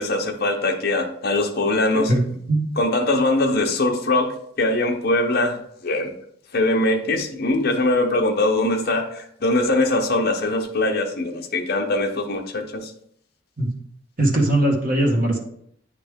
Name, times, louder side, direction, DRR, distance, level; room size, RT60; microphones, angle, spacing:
voice 1, 0.0-2.1 2.8-6.1 6.5-12.9, left 2 dB, 45° left, 3 dB, 0.8 m, -22 dB
voice 2, 14.2-15.4, right 1 dB, 40° right, 0 dB, 1.3 m, -19 dB
9.2 x 3.3 x 3.5 m, 0.69 s
head